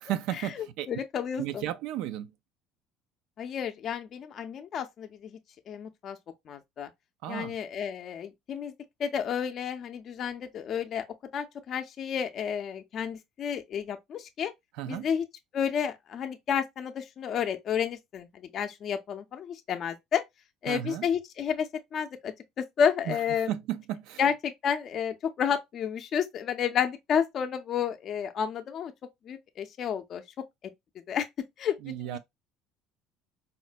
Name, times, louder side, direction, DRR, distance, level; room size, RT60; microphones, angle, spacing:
voice 1, 0.0-0.9 1.4-2.3 7.2-7.6 14.8-15.1 20.7-21.1 23.1-23.2 23.5-24.2 31.8-32.2, right 12 dB, 70° right, 0.3 m, -33 dB
voice 2, 0.6-1.6 3.4-5.3 5.7-6.2 6.5-6.9 7.3-8.7 9.0-11.0 11.3-14.5 14.9-15.2 15.5-20.2 20.6-23.5 24.2-28.9 29.3-30.2 31.1-32.2, left 8 dB, 45° left, 0.4 m, -31 dB
4.2 x 2.1 x 2.3 m
supercardioid pair, 115°, 0 cm